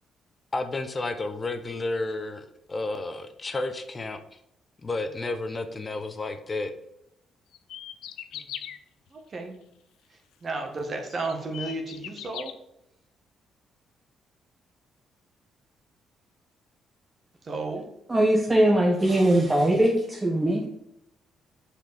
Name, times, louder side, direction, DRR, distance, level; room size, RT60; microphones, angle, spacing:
voice 1, 0.5-4.2 4.8-6.7, left 2 dB, 30° left, 9 dB, 0.9 m, -31 dB
sound 1, 7.5-8.8 10.5-10.6 11.1-12.5, left 10 dB, 85° left, 0.5 m, -39 dB
voice 2, 9.1-9.5 10.1-12.6 17.4-17.8, right 3 dB, 45° right, 3 dB, 1.5 m, -33 dB
voice 3, 18.1-20.7, right 1 dB, 20° right, 1 dB, 1.0 m, -21 dB
6.2 x 4.8 x 5.0 m, 0.81 s
cardioid pair, 90°, 0 cm